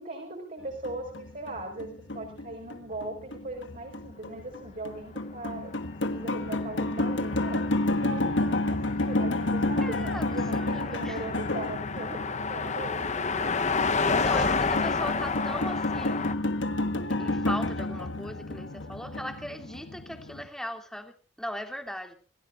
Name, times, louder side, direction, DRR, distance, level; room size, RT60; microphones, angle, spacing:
voice 1, 0.0-5.8 6.0-7.7 8.0-13.6, right 2 dB, 45° right, 1 dB, 5.2 m, -39 dB
sound 1, 0.6-20.5, left 2 dB, 80° left, 1.5 m, -31 dB
Car passing by, 6.2-16.3, left 4 dB, 40° left, 1.1 m, -31 dB
voice 2, 9.8-10.3 10.5-11.3 14.1-16.4 17.1-22.1, equal, 5° left, 5 dB, 2.7 m, -38 dB
28.0 x 16.5 x 2.6 m, 0.37 s
head